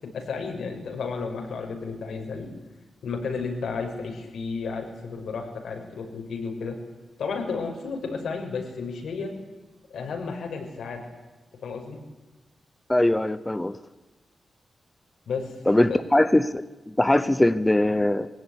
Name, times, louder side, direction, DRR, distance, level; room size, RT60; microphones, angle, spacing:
voice 1, 0.0-2.5 3.0-6.8 7.2-9.3 9.9-11.0 11.6-12.0 15.3-15.5 15.9-16.0, left 4 dB, 90° left, 3 dB, 6.0 m, -32 dB
voice 2, 12.9-13.8 15.7-16.6 17.0-18.3, left 1 dB, 10° left, 13 dB, 0.7 m, -21 dB
24.5 x 17.0 x 9.9 m, 1.2 s
wide cardioid pair, 180°, 0 cm